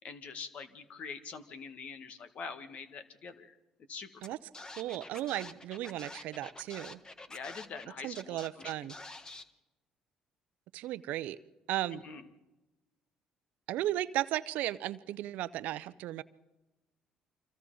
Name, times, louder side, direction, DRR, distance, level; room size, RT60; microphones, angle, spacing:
voice 1, 0.0-3.6 3.9-4.2 7.3-8.6 11.9-12.3, left 5 dB, 55° left, 9 dB, 1.8 m, -44 dB
Scratching (performance technique), 4.2-4.3 4.5-7.9 8.1-9.4, left 2 dB, 25° left, 1.4 m, -47 dB
voice 2, 4.8-7.0 8.0-8.9 10.7-11.4 11.7-12.0 13.7-16.2, right 14 dB, 70° right, 16 dB, 0.7 m, -35 dB
30.0 x 25.0 x 3.9 m, 1.1 s
hypercardioid pair, 60°, 3 cm